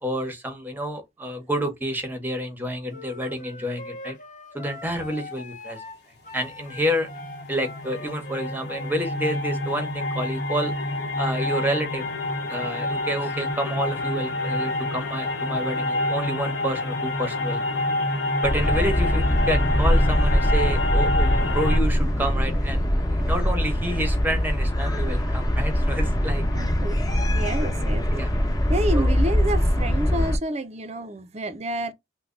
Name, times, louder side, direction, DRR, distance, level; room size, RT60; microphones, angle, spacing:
voice 1, 0.0-4.2 4.5-5.8 6.3-7.1 7.5-10.7 11.2-12.1 12.5-17.8 18.4-22.8 23.1-26.4 27.6-27.7 28.1-28.3 28.9-29.1, equal, 10° right, 0.9 m, -29 dB
sound 1, 2.9-9.4, left 2 dB, 45° left, 0.6 m, -42 dB
sound 2, 6.4-21.8, left 2 dB, 60° left, 1.1 m, -28 dB
sound 3, 18.4-30.4, equal, 20° left, 1.0 m, -22 dB
voice 2, 26.5-28.1 28.7-31.9, right 1 dB, 35° right, 0.5 m, -29 dB
3.3 x 2.2 x 3.7 m
head